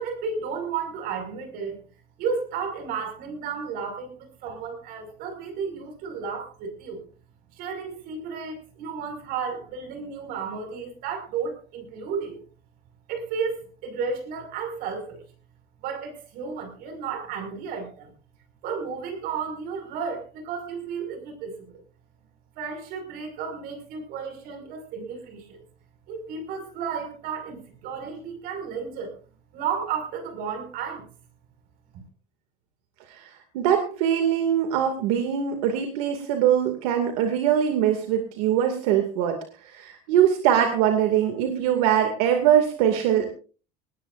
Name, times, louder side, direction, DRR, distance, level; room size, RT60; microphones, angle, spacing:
voice 1, 0.0-1.8 2.2-7.0 7.5-12.4 13.1-15.2 15.8-18.1 18.6-21.8 22.6-25.6 26.1-29.1 29.5-31.1, right 6 dB, 55° right, 7 dB, 5.9 m, -33 dB
voice 2, 33.5-39.4 39.6-43.3, right 9 dB, 85° right, 5 dB, 2.4 m, -22 dB
20.0 x 19.5 x 2.6 m, 0.38 s
cardioid pair, 155°, 18 cm